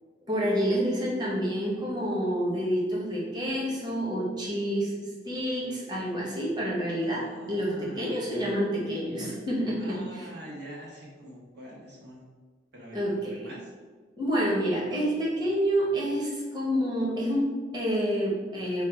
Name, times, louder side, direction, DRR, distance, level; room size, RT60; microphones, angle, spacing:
voice 1, 0.3-10.3 12.9-13.5 14.2-18.8, equal, 25° right, -5 dB, 1.0 m, -28 dB
voice 2, 7.1-8.2 9.8-12.2 12.7-13.7, right 1 dB, 60° right, -3 dB, 1.0 m, -45 dB
5.1 x 2.3 x 4.4 m, 1.5 s
head